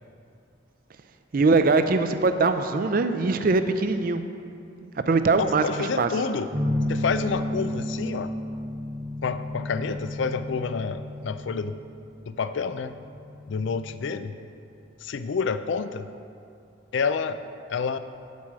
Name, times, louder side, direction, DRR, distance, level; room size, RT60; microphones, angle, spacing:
voice 1, 1.3-4.2 4.8-6.1, right 3 dB, 45° right, 9 dB, 0.4 m, -22 dB
voice 2, 5.4-6.5 6.9-8.3 9.2-11.8 12.3-13.0 13.5-14.3 15.0-16.1 16.9-17.4 17.7-18.0, left 5 dB, 70° left, 11 dB, 0.4 m, -28 dB
sound 1, 6.5-14.2, left 1 dB, 25° right, 0.8 m, -32 dB
8.4 x 4.7 x 7.4 m, 2.5 s
head